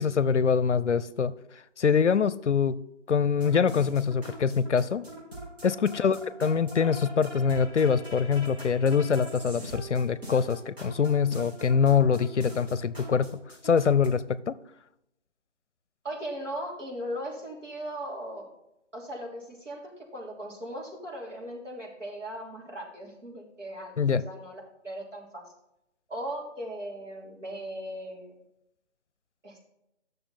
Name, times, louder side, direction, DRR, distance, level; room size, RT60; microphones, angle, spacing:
voice 1, 0.0-1.3 1.8-2.8 3.1-5.1 5.6-13.3 13.6-14.6 24.0-24.2, left 6 dB, 70° left, 17 dB, 0.6 m, -24 dB
sound 1, 3.3-14.1, right 1 dB, 55° right, 3.7 m, -43 dB
voice 2, 16.0-18.5 18.9-25.4 26.1-28.4 29.4-29.7, equal, 80° right, -2 dB, 3.3 m, -38 dB
9.9 x 6.7 x 4.2 m, 0.85 s
figure-of-eight pair, 175°, 37 cm